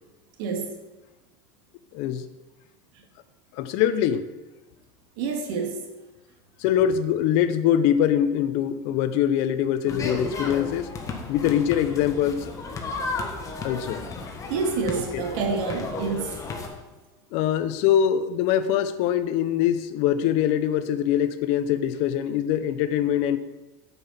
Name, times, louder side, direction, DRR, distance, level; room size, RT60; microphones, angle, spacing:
voice 1, 0.4-0.8 5.2-5.8 14.5-16.4, right 4 dB, 75° right, 3 dB, 2.2 m, -28 dB
voice 2, 3.6-4.2 6.6-10.9 11.3-12.5 13.6-14.0 15.1-15.2 17.3-23.4, left 10 dB, 65° left, 13 dB, 0.7 m, -23 dB
sound 1, 9.9-16.7, left 3 dB, 30° left, 1.6 m, -34 dB
9.2 x 5.9 x 7.4 m, 1.1 s
supercardioid pair, 130°, 12 cm